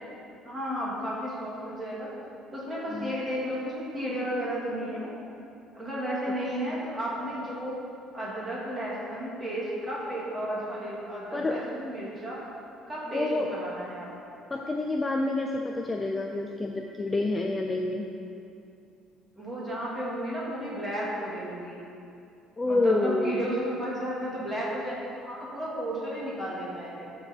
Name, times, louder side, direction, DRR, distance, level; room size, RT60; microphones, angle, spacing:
voice 1, 0.4-2.1 2.5-5.1 5.7-7.8 8.1-12.4 12.9-14.1 19.4-21.8 22.6-24.9 25.2-27.1, equal, 15° right, -7 dB, 2.4 m, -33 dB
voice 2, 13.1-13.5 14.5-18.0 22.6-23.4, left 2 dB, 15° left, 1 dB, 0.4 m, -28 dB
14.0 x 6.1 x 4.5 m, 2.6 s
cardioid pair, 170°, 0 cm